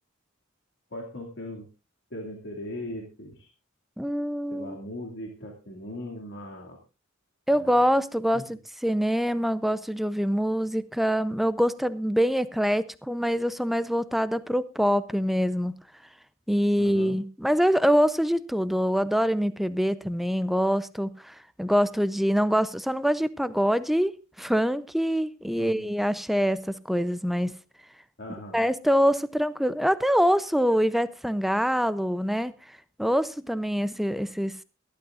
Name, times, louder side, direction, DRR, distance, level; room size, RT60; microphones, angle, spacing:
voice 1, 0.9-1.7 2.1-3.5 4.5-6.8 7.5-7.8 8.3-8.4 16.8-17.2 25.6-25.9 28.2-28.6, left 1 dB, 60° left, 2.4 m, -39 dB
voice 2, 4.0-4.8 7.5-15.7 16.5-27.6 28.5-32.5 33.0-34.6, equal, ahead, 0.6 m, -25 dB
23.0 x 11.5 x 2.5 m
head